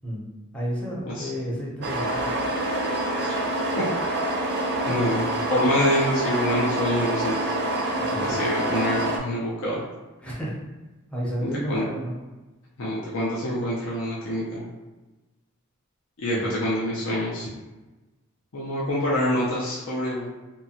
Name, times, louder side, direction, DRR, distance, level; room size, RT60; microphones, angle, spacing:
voice 1, 0.5-2.3 8.0-8.5 10.2-10.5 11.1-12.1 16.3-16.6, equal, 5° left, -6 dB, 0.7 m, -31 dB
sound 1, 1.8-9.2, right 1 dB, 50° right, 0.4 m, -26 dB
voice 2, 4.8-7.4 8.2-9.8 11.4-11.8 12.8-14.6 16.2-17.5 18.5-20.3, equal, 65° left, -6 dB, 0.5 m, -26 dB
2.7 x 2.2 x 2.7 m, 1.1 s
head